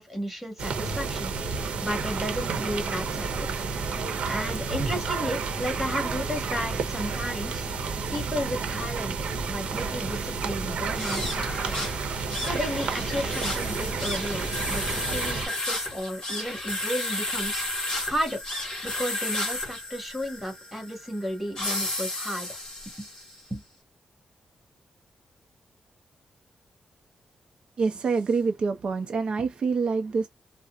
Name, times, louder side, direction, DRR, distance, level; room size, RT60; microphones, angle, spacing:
voice 1, 0.0-3.5 4.3-7.7 8.1-9.2 9.5-11.7 12.4-18.4 18.8-22.6 23.0-23.1 23.5-23.6, equal, ahead, 1.6 m, -33 dB
sound 1, 0.6-15.5, right 4 dB, 75° right, 0.9 m, -30 dB
sound 2, 10.9-23.4, left 1 dB, 35° left, 1.8 m, -33 dB
voice 2, 27.8-30.3, right 4 dB, 50° right, 0.5 m, -26 dB
4.1 x 2.1 x 2.4 m
wide cardioid pair, 135°, 2 cm